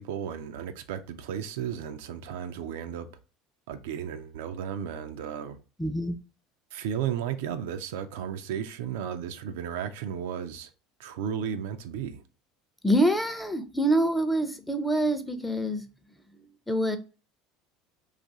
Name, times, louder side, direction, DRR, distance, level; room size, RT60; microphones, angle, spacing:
voice 1, 0.0-3.1 3.7-5.6 6.7-10.7 11.0-12.2, right 8 dB, 80° right, 0.4 m, -34 dB
voice 2, 5.8-6.2 12.8-15.8 16.4-17.0, right 1 dB, 5° left, 0.5 m, -26 dB
2.6 x 2.4 x 3.9 m
hypercardioid pair, 85°, 0 cm